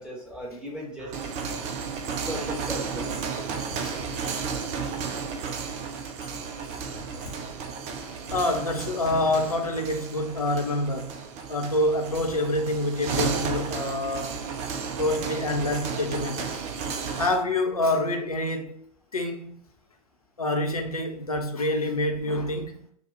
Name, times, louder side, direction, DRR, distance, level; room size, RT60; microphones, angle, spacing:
voice 1, 0.0-1.6 2.2-3.3, equal, 5° right, 1.6 m, -37 dB
sound 1, 1.0-17.4, right 6 dB, 40° right, 0.6 m, -33 dB
voice 2, 3.7-4.0 4.7-4.8 6.2-6.3 6.9-7.3 8.3-11.1 11.5-14.4 15.0-16.6 17.1-18.7 19.1-19.6 20.4-22.8, left 1 dB, 90° left, 0.8 m, -27 dB
5.0 x 2.5 x 4.1 m
figure-of-eight pair, 95°, 18 cm